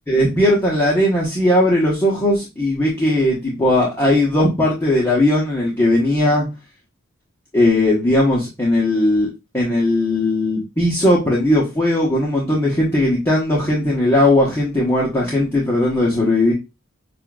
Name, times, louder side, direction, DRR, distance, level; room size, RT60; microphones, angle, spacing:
voice 1, 0.1-6.5 7.5-16.5, left 1 dB, 10° left, -5 dB, 1.2 m, -18 dB
6.5 x 2.6 x 2.4 m, 0.25 s
head